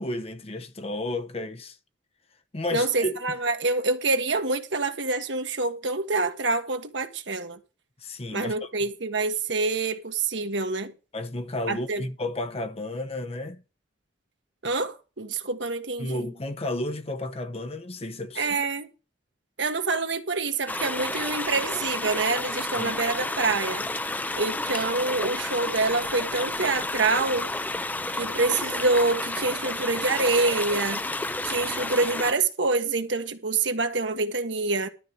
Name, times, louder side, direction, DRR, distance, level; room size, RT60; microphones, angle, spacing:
voice 1, 0.0-1.8 2.5-3.1 8.0-8.7 11.1-13.6 16.0-18.5 22.8-23.0, left 1 dB, 30° left, 0.9 m, -32 dB
voice 2, 2.7-7.6 8.3-10.9 11.7-12.0 14.6-16.3 18.4-18.9 19.6-23.9 24.3-27.5 28.2-31.1 31.4-34.9, right 3 dB, 70° right, 1.5 m, -26 dB
sound 1, 20.7-32.3, left 2 dB, 10° left, 0.5 m, -31 dB
12.5 x 4.7 x 7.8 m
head